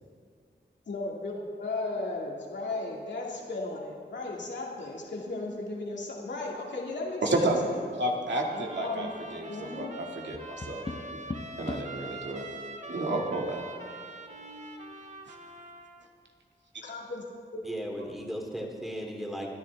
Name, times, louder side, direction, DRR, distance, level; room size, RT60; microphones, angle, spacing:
voice 1, 0.9-7.7 8.5-9.1 9.5-9.9 16.8-17.2 17.5-17.6, left 2 dB, 75° left, -3 dB, 2.3 m, -35 dB
voice 2, 7.2-7.6 8.0-11.2 11.6-12.4 12.9-13.6 15.3-15.4, right 2 dB, 75° right, 0 dB, 2.2 m, -31 dB
Trumpet, 8.5-16.1, right 2 dB, 40° right, 1.4 m, -44 dB
Tap, 10.3-12.0 14.0-14.8, left 2 dB, 30° left, 0.9 m, -40 dB
voice 3, 17.6-19.5, equal, ahead, -1 dB, 2.8 m, -36 dB
28.5 x 11.0 x 3.5 m, 2.2 s
wide cardioid pair, 85°, 19 cm